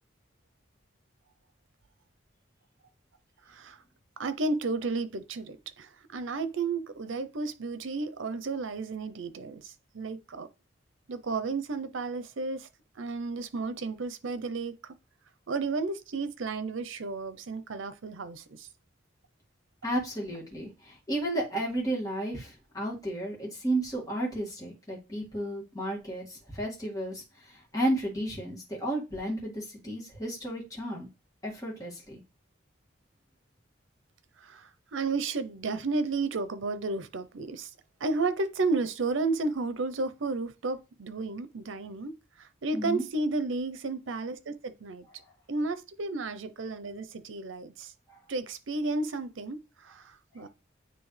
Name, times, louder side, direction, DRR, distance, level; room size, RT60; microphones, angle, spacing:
voice 1, 3.5-3.8 4.2-10.5 11.1-12.7 13.0-14.9 15.5-18.7 34.4-37.7 38.0-45.1 45.5-47.9 48.3-50.5, right 3 dB, 85° right, 0.7 m, -32 dB
voice 2, 19.8-31.1 31.4-32.2 42.7-43.0, right 1 dB, 20° left, 2.1 m, -33 dB
9.3 x 3.2 x 3.3 m
head